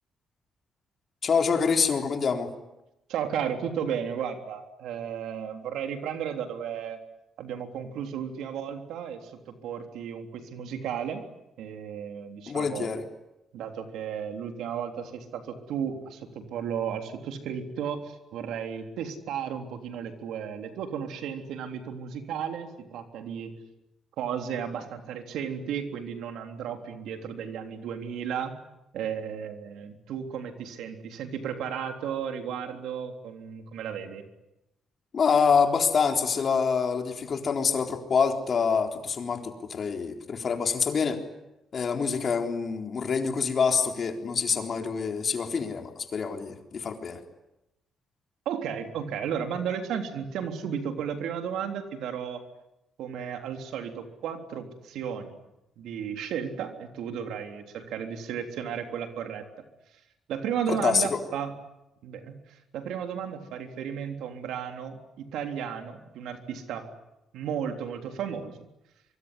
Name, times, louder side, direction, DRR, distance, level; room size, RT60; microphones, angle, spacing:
voice 1, 1.2-2.5 12.5-13.0 35.1-41.2 41.7-47.2 60.7-61.2, left 6 dB, 50° left, 4 dB, 4.0 m, -26 dB
voice 2, 3.1-7.0 7.4-11.2 11.6-12.9 13.5-23.5 24.2-28.6 28.9-34.2 48.5-52.4 53.0-55.4 55.8-59.5 60.3-61.5 62.0-66.9 67.3-68.6, right 8 dB, 85° right, 6 dB, 3.5 m, -34 dB
24.5 x 24.0 x 9.9 m, 0.90 s
cardioid pair, 90°, 0 cm